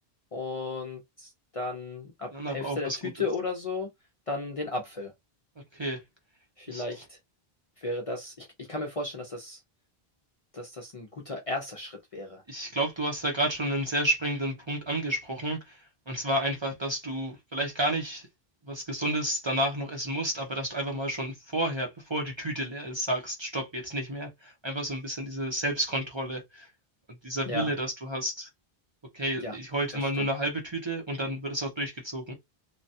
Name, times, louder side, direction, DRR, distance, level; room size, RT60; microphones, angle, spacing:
voice 1, 0.3-3.9 4.3-5.1 6.6-7.2 7.8-9.6 10.5-12.4 27.5-27.7 29.4-29.6 29.9-30.3, left 3 dB, 40° left, 0.5 m, -35 dB
voice 2, 2.3-3.0 5.7-6.0 6.7-6.8 12.5-15.8 16.1-18.3 18.6-26.7 27.2-28.5 29.1-32.3, right 1 dB, 30° right, 0.7 m, -31 dB
3.1 x 2.2 x 2.7 m
omnidirectional pair, 1.0 m